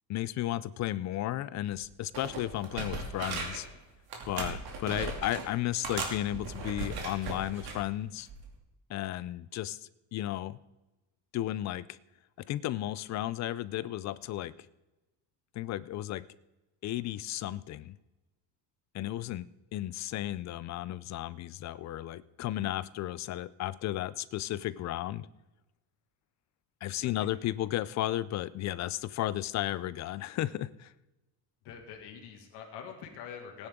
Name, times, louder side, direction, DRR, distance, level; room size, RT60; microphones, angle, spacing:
voice 1, 0.1-3.7 4.3-8.3 8.9-10.6 11.3-12.0 12.5-14.5 15.5-16.2 16.8-18.0 18.9-25.3 26.8-30.9, left 14 dB, 45° left, 17 dB, 0.4 m, -34 dB
sound 1, 1.7-1.9 2.1-3.7 4.1-5.5 5.8-7.8 8.3-8.5, right 4 dB, 60° right, 2.7 m, -37 dB
voice 2, 27.0-27.3 31.6-33.7, left 7 dB, 75° left, 2 dB, 1.9 m, -45 dB
18.0 x 9.9 x 3.7 m, 1.0 s
cardioid pair, 175°, 41 cm